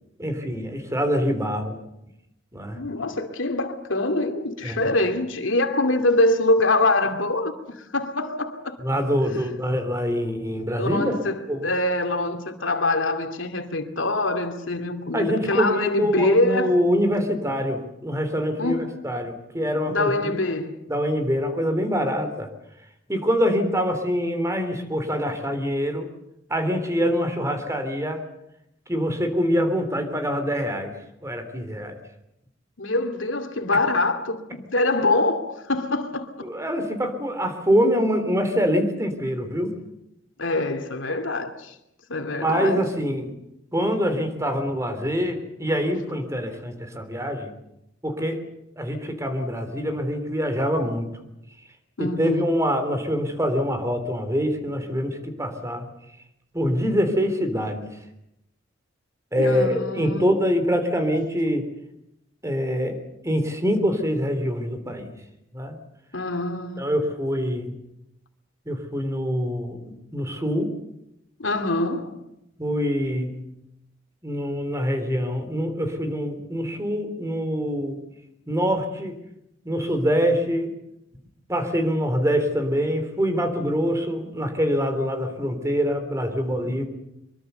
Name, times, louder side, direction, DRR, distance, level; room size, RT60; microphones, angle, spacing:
voice 1, 0.2-1.8 2.5-2.9 4.6-4.9 8.8-11.1 11.5-11.6 15.1-20.4 20.9-22.5 23.1-26.1 26.5-28.2 28.9-30.9 31.2-32.0 36.4-39.7 42.4-43.3 43.7-47.5 48.0-48.4 48.8-51.1 52.0-55.9 56.5-58.0 59.3-61.7 62.4-65.2 65.5-65.8 66.8-67.7 68.6-70.7 72.6-73.4 74.2-78.0 78.5-79.2 79.6-80.7 81.5-86.9, equal, 15° right, 3.3 m, -25 dB
voice 2, 2.7-8.8 10.8-16.8 18.6-18.9 19.9-20.8 32.8-36.5 40.4-41.7 42.1-42.8 52.0-52.5 59.4-60.2 66.1-66.9 71.4-72.2, left 2 dB, 85° left, 2.5 m, -24 dB
24.0 x 22.5 x 6.9 m
head